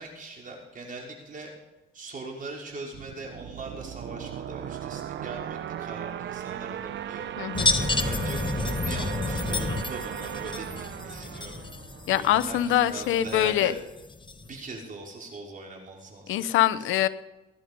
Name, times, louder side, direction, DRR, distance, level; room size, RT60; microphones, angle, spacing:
voice 1, 0.0-1.5 1.9-7.3 7.8-11.6 12.1-13.8 14.4-16.6, right 3 dB, 45° right, -1 dB, 5.1 m, -41 dB
sound 1, 2.9-12.5, right 11 dB, 65° right, 0.7 m, -37 dB
voice 2, 7.4-7.7 12.1-13.7 16.3-17.1, left 12 dB, 85° left, 14 dB, 0.9 m, -24 dB
sound 2, 7.5-14.6, left 3 dB, 25° left, 1.3 m, -30 dB
19.0 x 11.0 x 5.4 m, 1.0 s
cardioid pair, 90°, 20 cm